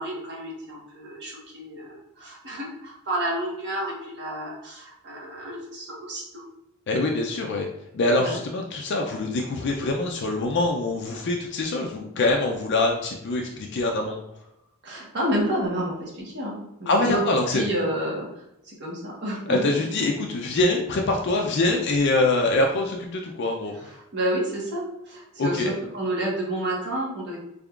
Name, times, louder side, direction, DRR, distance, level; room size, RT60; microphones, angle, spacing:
voice 1, 0.0-6.4 8.2-8.4 14.8-17.2 17.5-20.1 23.7-27.4, right 1 dB, 55° right, -4 dB, 1.2 m, -30 dB
voice 2, 6.9-7.7 7.9-14.2 16.9-17.6 19.5-23.9 25.4-25.7, left 2 dB, 55° left, 1 dB, 0.4 m, -24 dB
3.6 x 3.4 x 2.3 m, 0.85 s
head